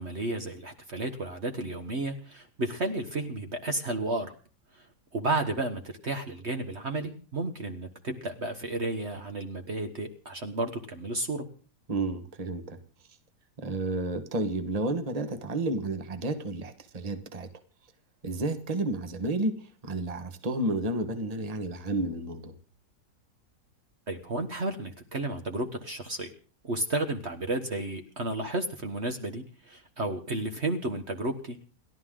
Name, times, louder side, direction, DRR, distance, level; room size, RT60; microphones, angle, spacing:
voice 1, 0.0-4.3 4.7-4.9 5.1-11.4 24.1-26.3 26.6-31.6, right 2 dB, 45° right, 4 dB, 1.5 m, -32 dB
voice 2, 11.9-12.8 13.6-17.5 18.2-22.5, right 2 dB, 25° right, 8 dB, 1.4 m, -31 dB
30.0 x 11.5 x 3.8 m, 0.40 s
omnidirectional pair, 1.7 m